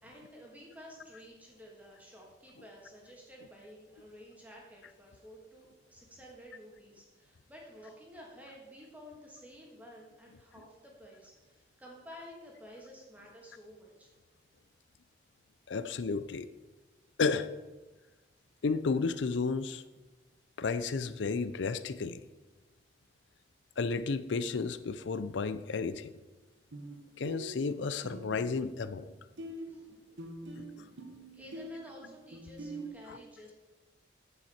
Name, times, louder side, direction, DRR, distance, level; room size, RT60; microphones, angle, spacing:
voice 1, 0.0-14.1 29.5-29.9 30.9-31.0 31.3-33.5, equal, 10° right, -2 dB, 1.7 m, -52 dB
voice 2, 15.7-16.5 17.2-17.5 18.6-19.8 20.6-22.2 23.8-26.1 27.2-29.1 30.5-30.6 33.1-33.2, left 4 dB, 80° left, 13 dB, 0.5 m, -32 dB
sound 1, 25.1-25.3 26.7-27.0 27.2-29.1 29.4-32.9, right 1 dB, 90° right, 1.3 m, -44 dB
9.4 x 7.6 x 4.4 m, 1.2 s
head